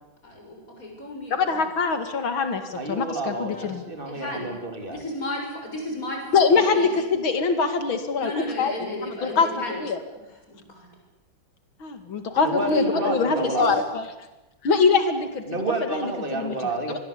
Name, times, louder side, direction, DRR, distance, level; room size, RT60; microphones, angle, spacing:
voice 1, 0.2-1.7 3.4-3.7 4.1-4.5 4.9-6.2 6.7-6.9 8.2-9.8 10.5-10.9 12.6-13.3 13.6-13.7, left 1 dB, 40° left, 2 dB, 7.1 m, -33 dB
voice 2, 1.3-3.8 6.3-8.3 8.6-8.7 9.0-10.0 11.8-14.0 14.6-15.4 15.8-16.5, left 5 dB, 80° left, 8 dB, 3.2 m, -23 dB
voice 3, 2.7-5.0 12.4-13.8 15.5-17.0, right 2 dB, 25° right, 5 dB, 3.5 m, -30 dB
26.5 x 21.5 x 8.7 m, 1.0 s
omnidirectional pair, 2.2 m